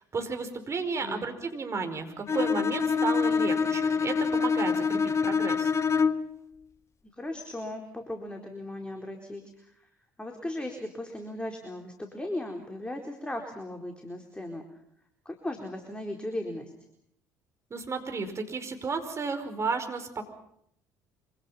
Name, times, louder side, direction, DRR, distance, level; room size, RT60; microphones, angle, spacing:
voice 1, 0.0-5.7 17.7-20.2, right 4 dB, 35° right, 6 dB, 5.2 m, -33 dB
Bowed string instrument, 2.3-6.4, left 5 dB, 35° left, 1.5 m, -26 dB
voice 2, 7.2-9.9 10.2-14.6 15.2-16.7, left 1 dB, 10° left, 3 dB, 4.3 m, -37 dB
26.5 x 26.0 x 5.8 m, 0.73 s
figure-of-eight pair, 55°, 9 cm